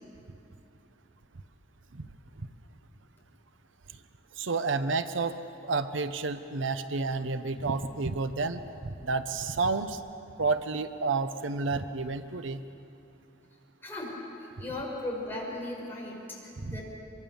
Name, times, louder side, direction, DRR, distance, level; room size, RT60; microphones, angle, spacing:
voice 1, 4.4-5.4 5.6-10.0 10.4-12.6 16.6-16.8, right 4 dB, 80° right, 11 dB, 0.8 m, -30 dB
voice 2, 13.8-16.8, left 1 dB, 10° left, -4 dB, 6.4 m, -37 dB
24.5 x 24.0 x 7.1 m, 2.7 s
head